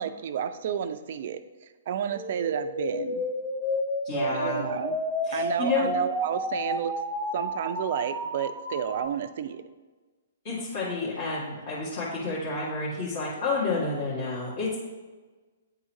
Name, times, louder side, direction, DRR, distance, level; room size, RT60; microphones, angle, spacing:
voice 1, 0.0-1.4 1.9-3.3 4.3-5.0 5.3-6.9 7.3-9.6, right 8 dB, 55° right, 11 dB, 0.4 m, -31 dB
sound 1, 2.1-9.1, equal, 5° right, 1.1 m, -31 dB
voice 2, 4.0-4.7 5.3-5.9 10.4-14.8, left 3 dB, 45° left, -8 dB, 1.7 m, -30 dB
9.1 x 3.8 x 3.0 m, 1.3 s
figure-of-eight pair, 120°, 0 cm